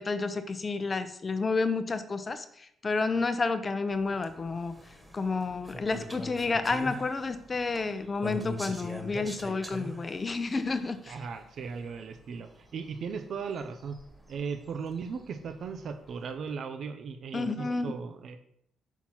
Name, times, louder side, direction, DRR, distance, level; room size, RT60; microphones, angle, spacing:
voice 1, 0.0-4.7 5.1-11.1 17.3-18.0, left 3 dB, 30° left, 11 dB, 0.8 m, -30 dB
sound 1, 3.9-16.3, left 1 dB, 10° right, 1.5 m, -43 dB
voice 2, 11.1-14.0 14.3-18.4, right 5 dB, 60° right, 8 dB, 0.7 m, -37 dB
5.9 x 4.2 x 6.0 m, 0.71 s
cardioid pair, 85°, 0 cm